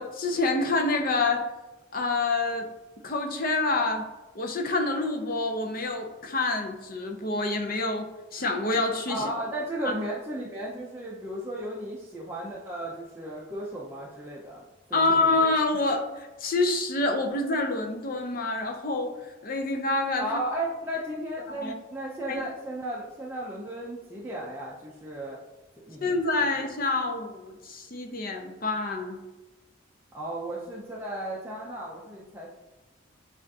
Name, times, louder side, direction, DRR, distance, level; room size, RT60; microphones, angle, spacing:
voice 1, 0.0-1.4 1.9-2.7 3.0-4.0 4.3-9.3 14.9-20.3 21.6-21.7 22.3-22.4 26.0-29.2, left 2 dB, 45° left, 3 dB, 0.6 m, -27 dB
voice 2, 9.1-14.6 14.9-15.3 20.2-25.4 25.9-26.1 26.4-26.6 30.1-32.5, right 1 dB, 10° right, -6 dB, 0.5 m, -35 dB
7.4 x 2.5 x 2.7 m, 1.1 s
head